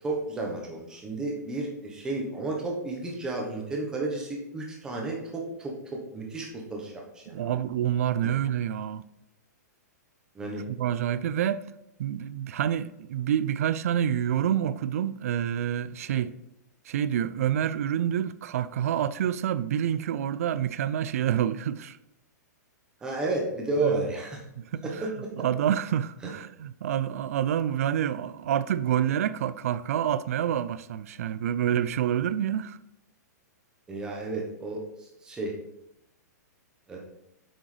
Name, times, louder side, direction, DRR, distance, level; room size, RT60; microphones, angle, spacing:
voice 1, 0.0-7.5 8.2-8.4 10.3-10.6 16.1-16.3 23.0-24.4 24.8-25.3 26.2-26.3 33.9-35.5 36.9-37.0, right 2 dB, 10° right, 1.1 m, -32 dB
voice 2, 7.3-9.0 10.7-11.6 12.0-16.3 16.9-22.0 23.8-24.0 24.6-25.1 25.4-32.8, right 10 dB, 55° right, 0.3 m, -27 dB
7.8 x 6.2 x 3.3 m
hypercardioid pair, 170°, 10 cm